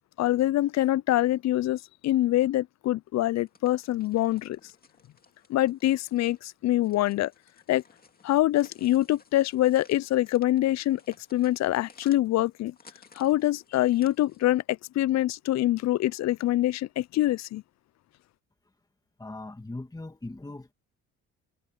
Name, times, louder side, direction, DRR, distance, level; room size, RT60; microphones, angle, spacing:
voice 1, 0.2-4.6 5.5-7.3 7.7-7.8 8.2-11.0 11.3-12.7 13.2-17.6, left 14 dB, 60° left, 0.5 m, -25 dB
sound 1, 3.3-14.6, left 4 dB, 30° left, 2.5 m, -58 dB
voice 2, 19.2-20.7, left 2 dB, 10° left, 2.1 m, -39 dB
cardioid pair, 90°, 30 cm